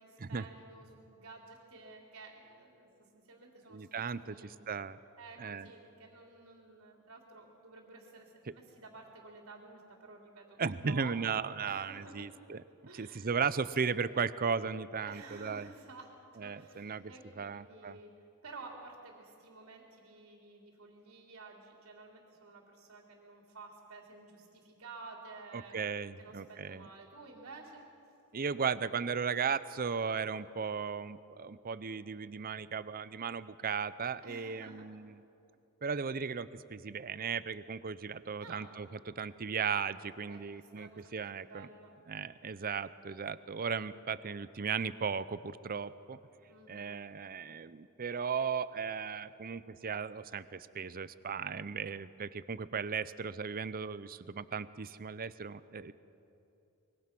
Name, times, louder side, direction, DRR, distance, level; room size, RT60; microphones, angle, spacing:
voice 1, 0.0-2.9 3.1-4.6 5.2-11.1 11.6-12.3 12.8-13.3 15.0-18.1 18.4-25.9 26.2-27.8 34.2-34.9 38.4-38.8 40.3-41.9 46.5-47.1, right 3 dB, 75° right, 0 dB, 3.4 m, -52 dB
voice 2, 3.7-5.0 5.4-5.7 10.6-12.6 12.9-15.7 16.4-18.0 25.5-26.9 28.3-35.2 35.8-41.7 42.1-46.2 46.7-55.9, right 6 dB, 40° right, 15 dB, 0.6 m, -36 dB
24.5 x 22.5 x 6.1 m, 2.8 s
head